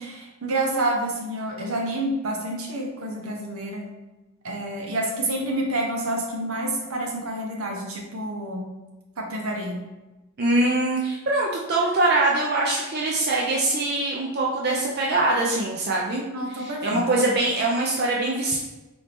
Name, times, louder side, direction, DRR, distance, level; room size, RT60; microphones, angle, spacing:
voice 1, 0.0-3.8 4.4-8.6 9.2-9.8 16.3-17.0, right 1 dB, 75° right, 0 dB, 0.8 m, -28 dB
voice 2, 10.4-18.6, right 2 dB, 45° right, -3 dB, 0.5 m, -23 dB
4.2 x 2.7 x 3.4 m, 1.1 s
head